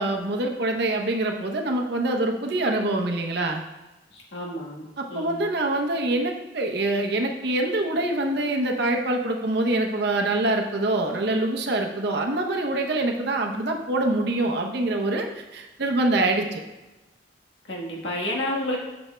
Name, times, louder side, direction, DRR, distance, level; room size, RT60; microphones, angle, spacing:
voice 1, 0.0-3.6 5.0-15.3 15.5-16.6, right 2 dB, 65° right, 3 dB, 0.8 m, -25 dB
voice 2, 4.1-5.5 17.7-18.8, left 1 dB, 75° left, -2 dB, 1.4 m, -30 dB
7.8 x 7.1 x 2.2 m, 1.1 s
head